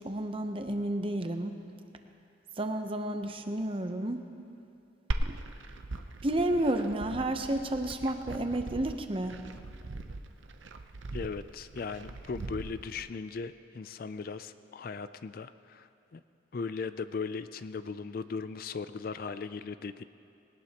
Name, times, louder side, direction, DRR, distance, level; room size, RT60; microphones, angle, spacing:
voice 1, 0.0-1.6 2.6-4.2 5.3-5.4 6.2-9.4, right 1 dB, 30° right, 6 dB, 0.8 m, -31 dB
Glass, 5.1-13.1, right 2 dB, 80° right, 0.7 m, -39 dB
voice 2, 11.1-16.2 16.5-20.0, left 5 dB, 50° left, 13 dB, 0.4 m, -38 dB
19.5 x 18.5 x 2.9 m, 2.7 s
head